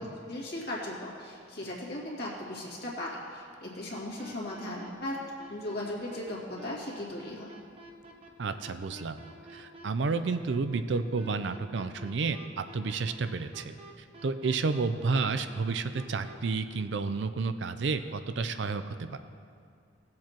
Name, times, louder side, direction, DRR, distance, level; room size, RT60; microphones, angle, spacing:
voice 1, 0.0-5.2 5.5-7.5, left 1 dB, 60° left, -4 dB, 2.1 m, -37 dB
sound 1, 3.9-16.3, right 2 dB, 30° right, 0.9 m, -49 dB
voice 2, 8.4-9.2 9.5-13.7 14.2-19.2, right 4 dB, 70° right, 10 dB, 0.5 m, -31 dB
17.5 x 7.5 x 3.0 m, 2.2 s
head